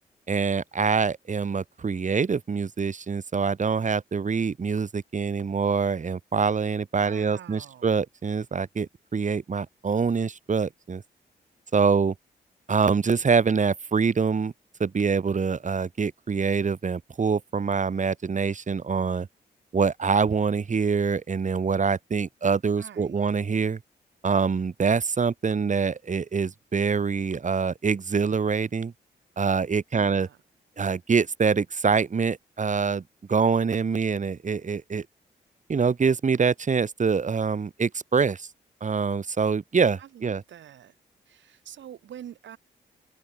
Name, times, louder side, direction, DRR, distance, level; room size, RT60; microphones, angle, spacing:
voice 1, 0.3-11.0 11.7-12.1 12.7-14.5 14.8-19.3 19.7-23.8 24.2-28.9 29.4-30.3 30.8-33.0 33.3-35.0 35.7-38.5 38.8-40.4, right 5 dB, 40° right, 1.2 m, -25 dB
voice 2, 7.0-7.9 22.8-23.2 29.9-30.4 40.0-41.0 41.2-42.6, right 10 dB, 80° right, 4.4 m, -45 dB
supercardioid pair, 45°, 19 cm